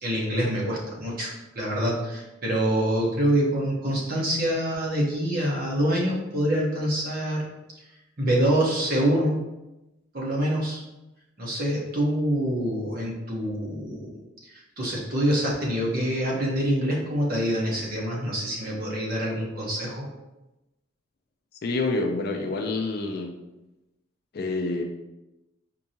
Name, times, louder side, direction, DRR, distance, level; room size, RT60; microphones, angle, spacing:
voice 1, 0.0-7.4 8.2-9.4 10.1-10.8 11.4-14.2 14.4-20.1, right 1 dB, 45° right, -3 dB, 0.8 m, -26 dB
voice 2, 21.6-23.3 24.3-24.8, left 3 dB, 45° left, 4 dB, 0.4 m, -27 dB
4.5 x 2.6 x 2.7 m, 0.98 s
head